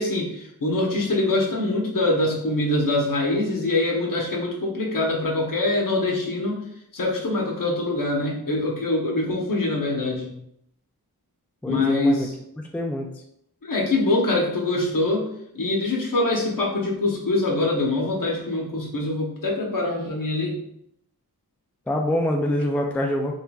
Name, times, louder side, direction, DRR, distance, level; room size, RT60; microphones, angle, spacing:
voice 1, 0.0-6.6 6.9-10.3 11.6-12.3 13.6-15.3 15.5-20.6, left 2 dB, 60° left, -2 dB, 1.0 m, -24 dB
voice 2, 11.6-12.3 12.7-13.1 21.9-23.4, left 1 dB, 5° left, 2 dB, 0.3 m, -25 dB
3.3 x 3.2 x 2.3 m, 0.75 s
wide cardioid pair, 75°, 37 cm